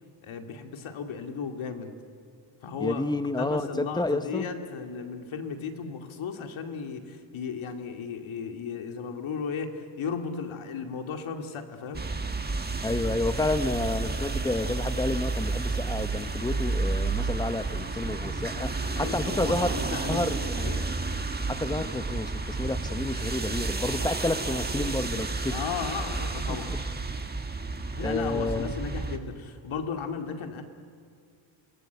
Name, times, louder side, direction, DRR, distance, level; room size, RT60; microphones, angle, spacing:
voice 1, 0.2-1.9 2.6-3.1 3.4-12.1 18.8-20.9 25.5-26.8 27.9-30.6, left 6 dB, 75° left, 5 dB, 2.3 m, -35 dB
voice 2, 2.8-4.5 12.8-19.7 20.1-20.7 21.5-25.6 26.7-26.8 28.0-28.8, left 2 dB, 10° left, 10 dB, 0.9 m, -30 dB
sound 1, 11.9-29.2, right 3 dB, 20° right, 1.6 m, -31 dB
28.5 x 20.5 x 8.1 m, 2.3 s
cardioid pair, 125°, 49 cm